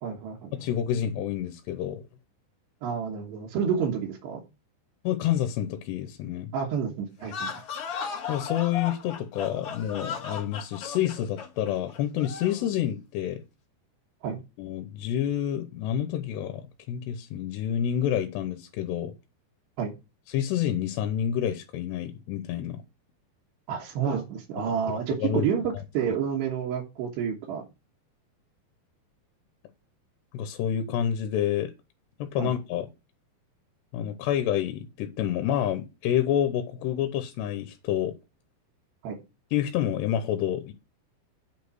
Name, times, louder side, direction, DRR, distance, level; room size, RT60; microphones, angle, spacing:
voice 1, 0.0-0.6 2.8-4.4 6.5-7.5 14.2-14.4 19.8-19.9 23.7-27.6 32.4-32.5 39.0-39.2, right 7 dB, 75° right, 3.5 m, -29 dB
voice 2, 0.6-2.0 5.0-6.5 8.3-13.4 14.6-19.1 20.3-22.8 24.7-25.5 30.3-31.7 32.2-32.9 33.9-38.2 39.5-40.7, left 10 dB, 85° left, 3.0 m, -28 dB
sound 1, 7.2-12.6, left 6 dB, 50° left, 1.8 m, -36 dB
8.6 x 5.3 x 6.1 m
omnidirectional pair, 4.9 m